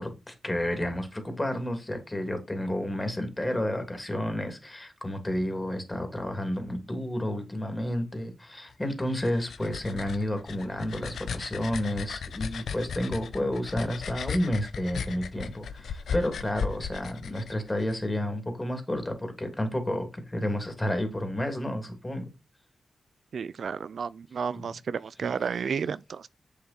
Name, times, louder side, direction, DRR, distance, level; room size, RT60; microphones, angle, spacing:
voice 1, 0.0-22.3 24.5-24.7 25.2-25.4, left 1 dB, 15° left, 2.7 m, -31 dB
sound 1, 9.0-18.0, left 6 dB, 80° left, 0.9 m, -36 dB
voice 2, 23.3-26.3, right 6 dB, 70° right, 0.4 m, -32 dB
7.9 x 6.7 x 4.3 m
wide cardioid pair, 110°, 0 cm